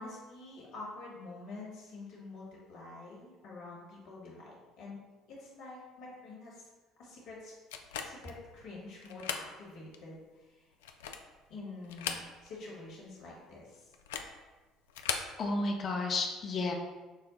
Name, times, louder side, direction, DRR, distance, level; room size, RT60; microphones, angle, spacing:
voice 1, 0.0-5.0 5.3-6.7 7.0-7.5 8.0-10.7 11.5-13.9, left 3 dB, 60° left, -4 dB, 1.5 m, -47 dB
sound 1, 7.7-8.4 9.0-9.5 9.9-10.0 10.7-11.4 11.8-12.6 12.9-13.0 13.9-14.4 14.9-15.3, left 7 dB, 75° left, 0.3 m, -38 dB
voice 2, 15.4-16.7, left 3 dB, 45° left, 2 dB, 0.7 m, -32 dB
6.4 x 2.1 x 3.8 m, 1.3 s
hypercardioid pair, 55°, 0 cm